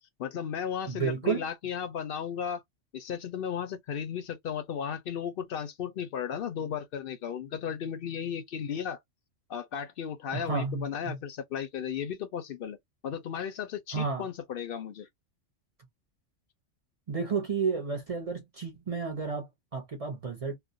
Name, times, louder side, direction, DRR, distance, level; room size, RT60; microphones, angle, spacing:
voice 1, 0.2-2.6 2.9-9.0 9.5-12.8 13.0-15.1, left 8 dB, 60° left, 0.7 m, -35 dB
voice 2, 0.9-1.5 10.3-11.2 13.9-14.3 17.1-20.6, right 5 dB, 40° right, 0.5 m, -32 dB
2.4 x 2.0 x 2.5 m
omnidirectional pair, 1.2 m